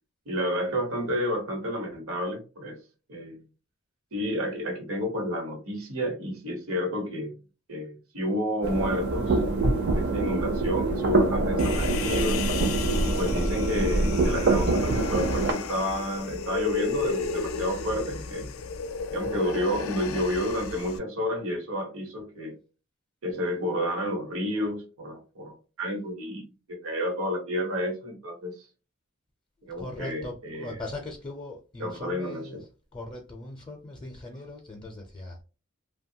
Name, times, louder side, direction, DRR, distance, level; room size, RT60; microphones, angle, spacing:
voice 1, 0.3-2.8 3.1-3.4 4.1-7.4 7.7-12.4 13.0-18.5 19.1-22.6 23.2-28.7 29.6-30.8 31.8-32.6, equal, 90° right, 1.0 m, -30 dB
sound 1, 8.6-15.5, right 2 dB, 55° right, 0.5 m, -25 dB
Human voice, 11.6-21.0, left 5 dB, 80° left, 0.4 m, -33 dB
voice 2, 12.9-13.4 29.6-35.4, left 2 dB, 20° left, 0.4 m, -40 dB
2.8 x 2.2 x 2.7 m
head